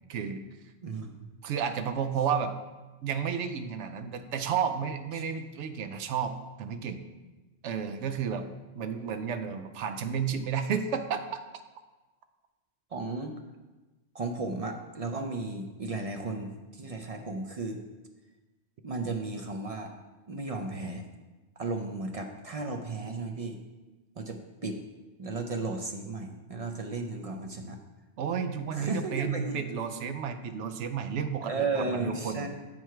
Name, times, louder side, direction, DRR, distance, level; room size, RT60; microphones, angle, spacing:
voice 1, 0.1-0.4 1.4-2.5 3.0-7.0 7.6-8.5 8.8-11.2 28.2-32.5, right 7 dB, 80° right, 8 dB, 0.9 m, -32 dB
voice 2, 0.8-1.3 5.1-5.2 5.8-5.9 12.9-13.3 14.1-17.8 18.8-19.9 20.3-21.0 21.6-23.6 24.2-24.8 25.2-27.8 28.7-29.6 31.4-32.5, right 3 dB, 50° right, 3 dB, 0.4 m, -34 dB
7.5 x 4.6 x 4.5 m, 1.2 s
omnidirectional pair, 1.2 m